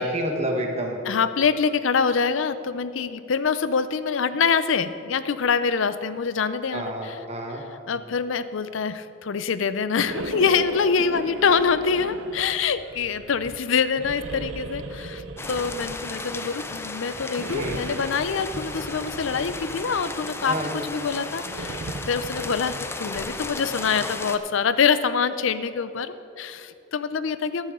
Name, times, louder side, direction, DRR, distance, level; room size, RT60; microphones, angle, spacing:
voice 1, 0.0-1.0 6.7-7.6 11.1-11.2 17.5-17.8 20.4-20.8, right 1 dB, 30° right, 1 dB, 1.3 m, -29 dB
voice 2, 1.1-7.1 7.9-20.5 20.9-27.7, left 5 dB, 75° left, 13 dB, 0.5 m, -25 dB
sound 1, 10.0-13.6 13.9-16.3 17.3-20.1 21.4-22.9, right 2 dB, 70° right, 0.7 m, -37 dB
sound 2, 15.4-24.4, left 3 dB, 10° left, 0.3 m, -35 dB
14.0 x 10.5 x 3.7 m, 2.8 s
head